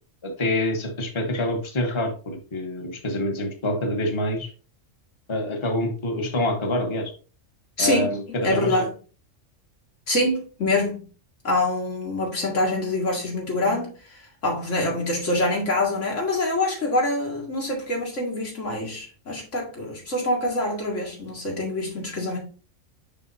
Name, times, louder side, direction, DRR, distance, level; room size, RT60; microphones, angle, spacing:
voice 1, 0.2-4.5 5.3-7.1 7.8-8.9, left 1 dB, 25° left, 1.1 m, -26 dB
voice 2, 7.8-8.1 8.4-8.9 10.1-11.0 11.4-22.4, left 1 dB, 75° left, 2.4 m, -25 dB
6.7 x 5.5 x 2.6 m
omnidirectional pair, 1.3 m